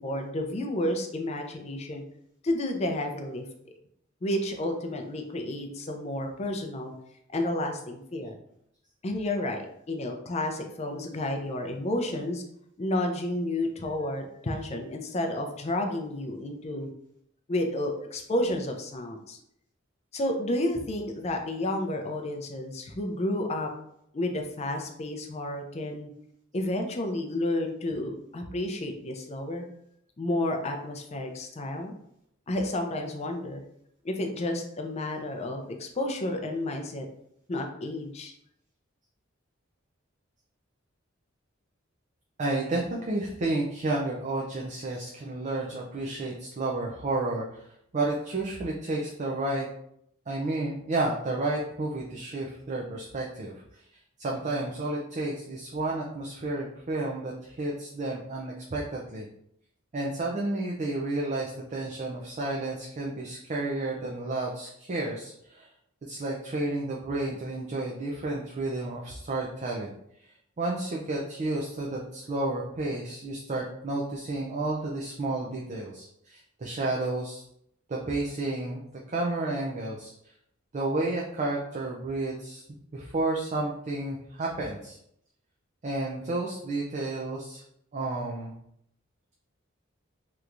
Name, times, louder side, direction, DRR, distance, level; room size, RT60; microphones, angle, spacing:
voice 1, 0.0-2.0 2.4-3.4 4.2-6.9 7.3-8.4 9.0-12.4 12.8-16.9 17.5-19.4 20.1-23.7 24.1-26.1 26.5-29.7 30.2-31.9 32.5-33.6 34.0-37.1 37.5-38.3, left 1 dB, 35° left, 4 dB, 0.5 m, -31 dB
voice 2, 42.4-47.7 47.9-49.7 50.3-53.8 54.2-59.3 59.9-65.7 66.0-69.9 70.2-77.4 77.9-80.1 80.7-82.6 82.9-85.0 85.8-87.6 87.9-88.5, right 2 dB, 35° right, -2 dB, 0.4 m, -31 dB
3.3 x 2.9 x 2.5 m, 0.73 s
head